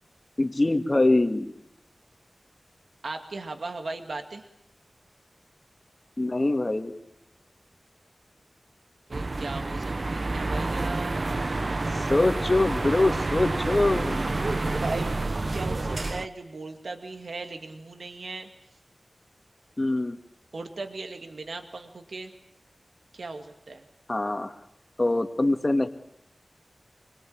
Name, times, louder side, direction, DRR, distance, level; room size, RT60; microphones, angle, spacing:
voice 1, 0.4-1.5 6.2-6.9 12.0-14.3 19.8-20.2 24.1-24.5 25.0-25.9, left 2 dB, 30° left, 7 dB, 2.2 m, -24 dB
voice 2, 3.0-4.5 9.1-11.2 14.7-18.5 20.5-22.3 23.1-23.8, right 3 dB, 80° right, 6 dB, 2.4 m, -37 dB
sound 1, 9.1-16.3, right 2 dB, 50° right, 1.0 m, -28 dB
26.5 x 22.5 x 8.9 m, 0.74 s
wide cardioid pair, 85°, 0 cm